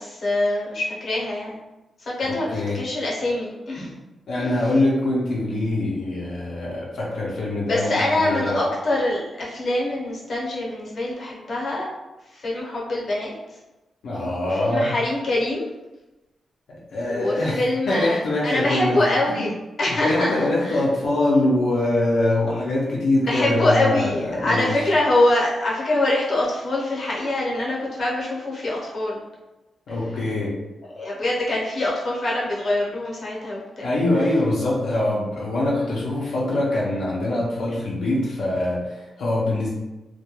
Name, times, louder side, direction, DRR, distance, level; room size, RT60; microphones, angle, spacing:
voice 1, 0.0-1.6 2.0-4.0 4.4-4.5 7.7-11.9 12.3-13.6 14.5-15.7 17.1-19.5 19.8-20.8 23.3-29.2 30.9-33.9 34.2-34.3 35.7-35.9, left 1 dB, 50° left, -4 dB, 0.7 m, -24 dB
voice 2, 2.2-2.8 4.3-8.6 14.0-14.9 16.7-19.5 20.0-24.9 29.9-30.6 33.8-39.7, left 1 dB, 85° left, -6 dB, 0.5 m, -23 dB
2.2 x 2.1 x 2.9 m, 1.0 s
wide cardioid pair, 130°, 0 cm